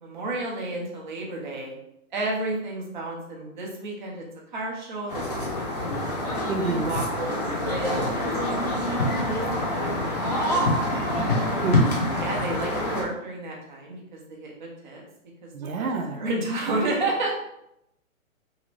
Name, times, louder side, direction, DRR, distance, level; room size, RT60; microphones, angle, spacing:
voice 1, 0.0-1.7 2.1-4.2 4.5-6.2 6.8-7.3 7.6-9.0 9.3-11.4 12.2-15.0 15.4-15.5 15.8-17.4, right 2 dB, 35° right, -2 dB, 0.6 m, -32 dB
sound 1, 5.1-13.0, left 1 dB, 30° left, 0.6 m, -26 dB
voice 2, 6.5-6.9 11.6-12.0 15.5-16.2, right 3 dB, 85° right, 5 dB, 0.7 m, -28 dB
2.8 x 2.5 x 3.1 m, 0.80 s
hypercardioid pair, 170°, 41 cm